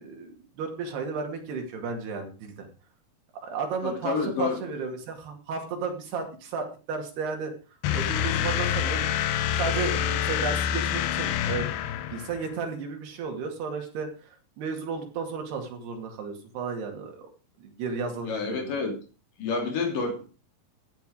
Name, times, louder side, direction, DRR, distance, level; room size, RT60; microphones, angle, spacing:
voice 1, 0.0-2.7 3.4-7.5 7.9-9.1 9.5-11.8 12.1-17.3 17.6-18.7, right 5 dB, 85° right, 3 dB, 4.4 m, -33 dB
voice 2, 3.8-4.6 8.3-8.5 18.2-18.9 19.4-20.2, left 4 dB, 60° left, 3 dB, 4.6 m, -29 dB
sound 1, 7.8-12.5, left 10 dB, 80° left, 2.9 m, -27 dB
14.5 x 10.0 x 4.9 m, 0.34 s
omnidirectional pair, 4.5 m